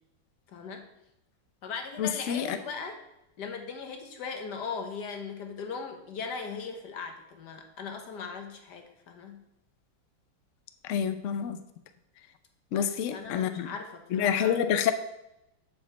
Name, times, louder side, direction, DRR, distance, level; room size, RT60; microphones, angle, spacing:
voice 1, 0.5-0.9 1.6-3.0 3.4-9.4 12.7-14.6, left 5 dB, 60° left, 5 dB, 1.6 m, -39 dB
voice 2, 2.0-2.6 10.9-11.6 12.7-13.7 14.1-14.9, left 8 dB, 85° left, 10 dB, 0.6 m, -27 dB
7.7 x 5.1 x 6.9 m, 0.85 s
omnidirectional pair, 2.1 m